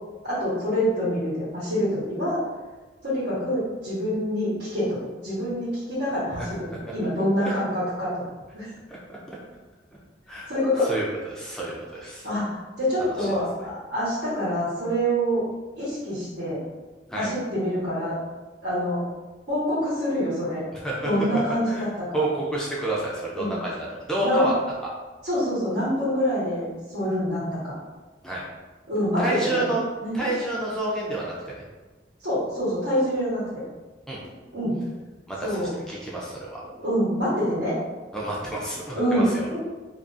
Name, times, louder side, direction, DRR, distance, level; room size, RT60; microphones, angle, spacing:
voice 1, 0.2-2.4 3.0-5.0 5.2-8.2 8.5-8.7 10.5-10.9 12.2-15.4 15.7-16.6 17.1-18.1 18.6-19.0 19.5-20.6 21.0-22.2 23.3-23.6 24.2-24.5 25.2-27.7 28.9-29.6 30.0-30.3 32.2-33.6 34.5-34.8 35.4-35.7 36.8-37.7 38.9-39.6, equal, 70° right, -11 dB, 1.0 m, -26 dB
voice 2, 8.9-9.4 10.3-10.5 10.9-12.3 13.2-13.3 17.1-17.3 20.7-21.1 21.7-21.9 22.1-24.5 28.2-28.4 29.2-29.8 30.1-31.6 34.1-34.2 35.3-36.6 38.1-39.6, right 2 dB, 5° left, -5 dB, 0.4 m, -29 dB
2.4 x 2.3 x 2.5 m, 1.2 s
head